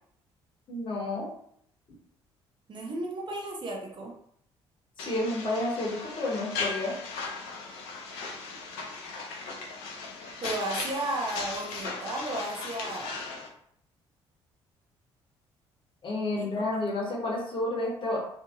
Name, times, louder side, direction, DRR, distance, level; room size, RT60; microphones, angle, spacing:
voice 1, 0.7-1.3 5.0-6.9 16.0-18.2, left 2 dB, 35° left, -3 dB, 1.0 m, -30 dB
voice 2, 2.7-4.1 10.4-13.2 16.4-16.5, right 1 dB, 35° right, -1 dB, 0.7 m, -34 dB
sound 1, 5.0-13.5, left 4 dB, 65° left, 0.6 m, -37 dB
2.6 x 2.6 x 2.5 m, 0.68 s
figure-of-eight pair, 50°, 14 cm